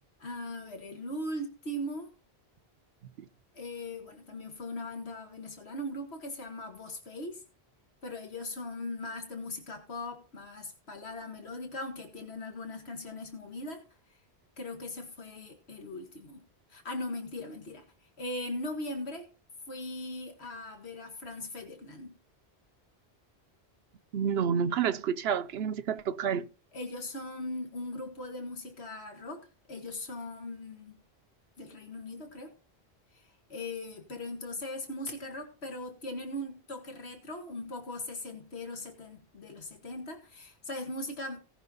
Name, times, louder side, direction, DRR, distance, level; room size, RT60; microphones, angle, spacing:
voice 1, 0.2-2.1 3.5-7.4 8.0-13.8 14.6-16.4 16.7-17.8 18.2-19.3 19.7-22.2 26.7-31.0 31.6-32.5 33.1-41.4, left 1 dB, 85° left, 2.1 m, -39 dB
voice 2, 24.1-26.5, right 7 dB, 80° right, 0.9 m, -29 dB
18.0 x 6.0 x 4.0 m
omnidirectional pair, 1.1 m